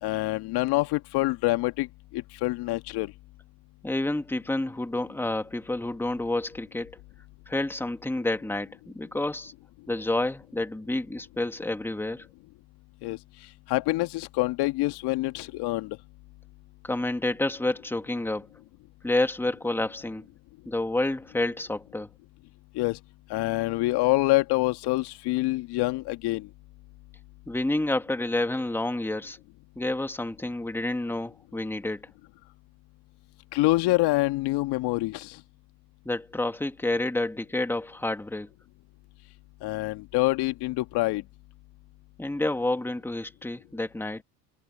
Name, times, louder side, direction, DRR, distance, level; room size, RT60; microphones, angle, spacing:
voice 1, 0.0-3.1 13.0-13.2 13.7-16.0 22.7-23.0 23.3-26.5 33.5-35.4 39.6-41.2, left 20 dB, 50° left, 1.9 m, -26 dB
voice 2, 3.8-7.0 7.5-9.5 9.9-12.3 16.8-18.5 19.0-20.3 20.7-22.1 27.5-29.4 29.8-32.1 36.1-38.5 42.2-44.2, left 2 dB, 5° left, 2.2 m, -29 dB
hypercardioid pair, 90°, 49 cm